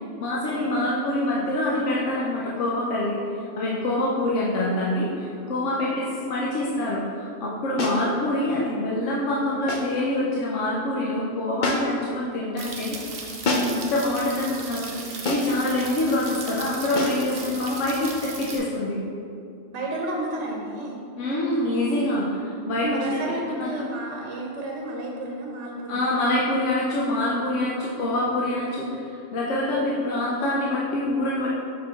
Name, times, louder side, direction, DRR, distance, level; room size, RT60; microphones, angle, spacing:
voice 1, 0.2-3.2 3.6-13.0 13.6-15.0 15.3-19.0 21.2-23.2 23.5-23.9 25.9-29.0 29.3-31.5, left 1 dB, 80° left, -5 dB, 1.1 m, -25 dB
voice 2, 5.3-5.8 17.3-17.6 19.7-21.0 22.8-26.1, right 2 dB, 75° right, -1 dB, 1.0 m, -32 dB
sound 1, 7.8-8.1 9.7-10.0 11.6-12.1 13.4-13.9 15.3-15.6 17.0-17.3, left 2 dB, 50° left, 0.7 m, -26 dB
sound 2, 12.6-18.6, right 4 dB, 55° right, 0.9 m, -37 dB
6.0 x 4.6 x 3.6 m, 2.4 s
omnidirectional pair, 1.2 m